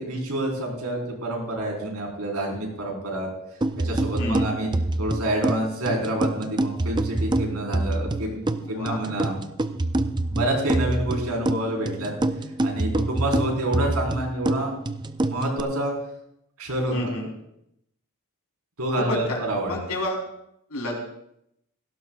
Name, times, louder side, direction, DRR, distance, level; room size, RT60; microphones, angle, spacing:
voice 1, 0.0-3.3 3.8-4.7 5.0-8.4 8.7-9.3 10.3-12.1 12.6-14.8 15.3-15.9 16.6-16.9 18.8-19.8, right 1 dB, 80° right, 0 dB, 4.4 m, -28 dB
sound 1, 3.6-15.6, right 2 dB, 20° right, 0.5 m, -26 dB
voice 2, 8.6-9.0 16.9-17.3 19.0-19.4 19.7-20.2 20.7-21.0, left 2 dB, 80° left, 0 dB, 3.8 m, -29 dB
17.5 x 16.0 x 2.4 m, 0.77 s
head